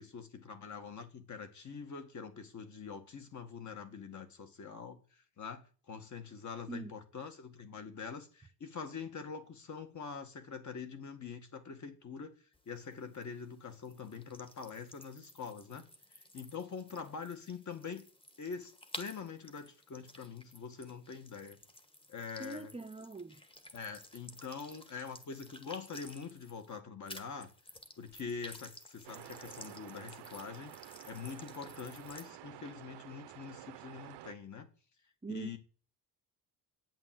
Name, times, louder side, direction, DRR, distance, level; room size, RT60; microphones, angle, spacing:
voice 1, 0.0-5.0 5.4-12.4 12.7-15.9 16.3-18.1 18.4-21.6 22.1-22.7 23.7-27.5 28.0-34.7 35.3-35.6, left 6 dB, 45° left, 2.1 m, -44 dB
sound 1, 12.5-26.8 27.1-32.3, left 1 dB, 15° left, 1.3 m, -53 dB
voice 2, 22.4-23.4 35.2-35.6, right 3 dB, 15° right, 0.7 m, -42 dB
sound 2, 29.0-34.3, right 14 dB, 90° right, 0.8 m, -51 dB
11.5 x 9.1 x 7.9 m
cardioid pair, 160°, 41 cm